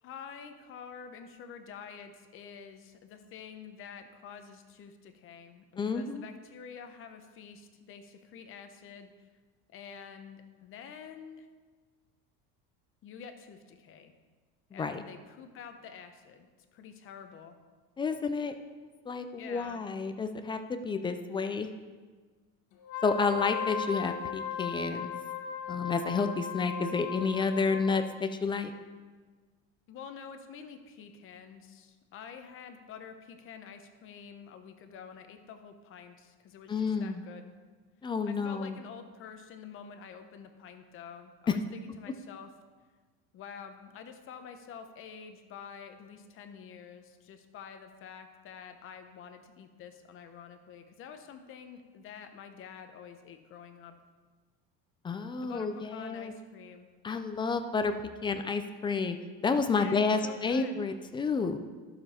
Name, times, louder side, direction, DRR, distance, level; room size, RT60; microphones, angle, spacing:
voice 1, 0.0-9.3 9.7-11.5 13.0-14.1 14.7-17.6 19.4-19.8 29.9-37.5 38.2-42.5 43.3-53.9 55.4-56.9 59.7-60.8, left 7 dB, 40° left, 7 dB, 0.9 m, -48 dB
voice 2, 5.8-6.2 14.7-15.0 18.0-18.5 19.1-21.7 23.0-25.1 25.7-28.7 36.7-37.2 38.0-38.8 55.0-56.3 57.0-59.2 59.4-61.6, left 4 dB, 15° left, 8 dB, 0.4 m, -30 dB
Wind instrument woodwind instrument, 22.8-28.1, left 7 dB, 65° left, 1.3 m, -37 dB
12.0 x 6.9 x 4.2 m, 1.4 s
cardioid pair, 150°, 33 cm